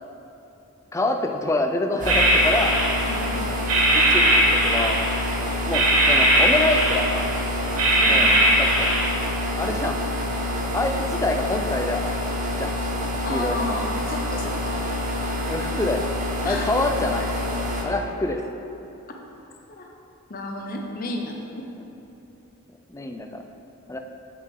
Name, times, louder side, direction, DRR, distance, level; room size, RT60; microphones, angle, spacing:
voice 1, 0.9-2.8 4.1-4.2 4.6-5.0 5.7-7.3 8.1-8.3 8.6-8.9 9.6-10.0 10.7-12.1 12.6-12.8 13.3-13.8 15.4-16.0 16.4-18.4 22.9-23.4 23.9-24.0, left 2 dB, 15° left, 4 dB, 0.3 m, -26 dB
sound 1, 2.0-17.8, left 1 dB, 35° right, 0.8 m, -27 dB
sound 2, 2.1-3.3 3.7-5.3 5.7-7.4 7.8-9.1, right 1 dB, 80° right, 1.0 m, -20 dB
voice 2, 3.1-3.4 3.9-4.0 8.0-8.3 13.2-14.8 16.4-17.0 19.7-19.9 20.3-21.7, left 2 dB, 40° left, 1 dB, 0.7 m, -32 dB
7.7 x 6.1 x 3.7 m, 2.9 s
head